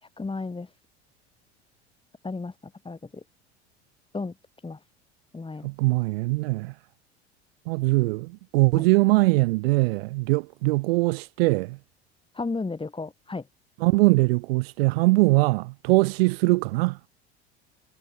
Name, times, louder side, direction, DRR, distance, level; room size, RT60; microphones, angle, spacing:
voice 1, 0.2-0.7 2.2-2.5 2.8-3.2 4.1-4.3 4.6-4.8 5.3-5.7 8.8-8.9 12.3-13.5, left 3 dB, 15° left, 6.1 m, -33 dB
voice 2, 5.6-6.7 7.7-11.8 13.8-17.0, right 23 dB, 60° right, 0.6 m, -22 dB
figure-of-eight pair, 70°, 34 cm